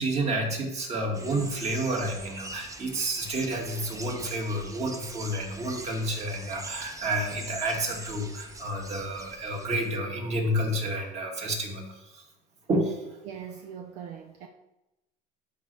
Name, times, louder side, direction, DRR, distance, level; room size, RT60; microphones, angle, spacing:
voice 1, 0.0-12.2 12.7-13.0, right 1 dB, 35° right, 2.1 m, -30 dB
sound 1, 1.1-10.0, right 2 dB, 20° right, 0.8 m, -43 dB
voice 2, 13.2-14.5, right 8 dB, 70° right, 0.7 m, -41 dB
11.5 x 4.1 x 3.4 m
supercardioid pair, 100°, 18 cm